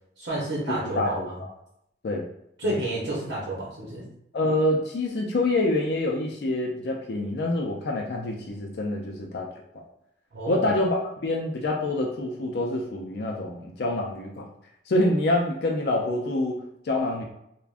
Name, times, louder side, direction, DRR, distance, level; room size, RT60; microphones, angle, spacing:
voice 1, 0.2-1.4 2.6-4.1 10.3-10.7, right 1 dB, 70° right, -6 dB, 0.8 m, -30 dB
voice 2, 0.7-1.5 2.0-2.3 2.6-2.8 4.3-9.5 9.7-9.8 10.5-14.4 14.9-17.2, left 2 dB, 65° left, 0 dB, 0.4 m, -26 dB
3.4 x 2.2 x 2.4 m, 0.79 s
head